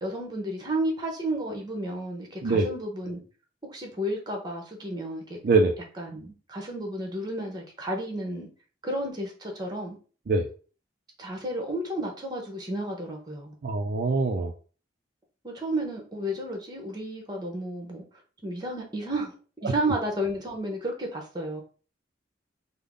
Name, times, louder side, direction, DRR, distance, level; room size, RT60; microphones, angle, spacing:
voice 1, 0.0-3.2 3.6-5.4 6.0-8.5 8.8-10.0 11.2-13.5 15.4-19.3 19.6-21.6, right 1 dB, 20° right, 2 dB, 0.9 m, -32 dB
voice 2, 13.6-14.5, right 3 dB, 50° right, 2 dB, 0.4 m, -23 dB
3.6 x 2.0 x 3.5 m, 0.38 s
head